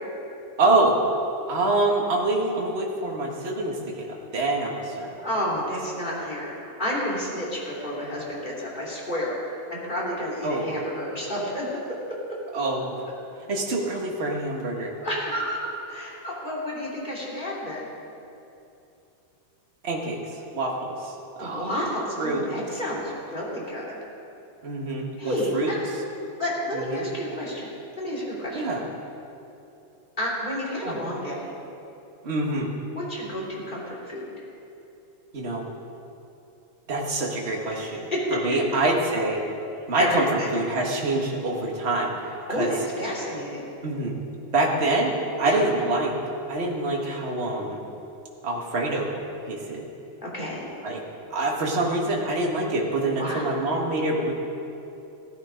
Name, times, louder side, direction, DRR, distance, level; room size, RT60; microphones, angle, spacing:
voice 1, 0.6-1.0 1.5-5.1 10.4-10.7 12.5-13.0 13.5-14.9 19.8-20.2 20.5-21.7 22.2-22.5 24.6-25.7 26.7-27.1 28.5-28.8 30.8-31.0 32.2-32.7 35.3-35.6 36.9-39.4 39.9-42.2 42.5-42.7 43.8-44.1 44.5-46.1 46.5-47.8 48.4-49.1 49.5-49.9 50.8-51.0 51.3-54.3, right 2 dB, 35° right, -1 dB, 1.0 m, -26 dB
voice 2, 5.2-11.6 14.8-17.9 21.4-24.0 25.2-25.8 26.4-27.7 28.0-28.6 30.2-31.5 32.9-34.3 37.7-38.4 40.0-40.5 42.5-43.6 45.4-45.6 50.2-50.7 53.2-53.5, equal, 15° left, -5 dB, 2.8 m, -30 dB
16.5 x 12.0 x 5.2 m, 2.8 s
omnidirectional pair, 3.7 m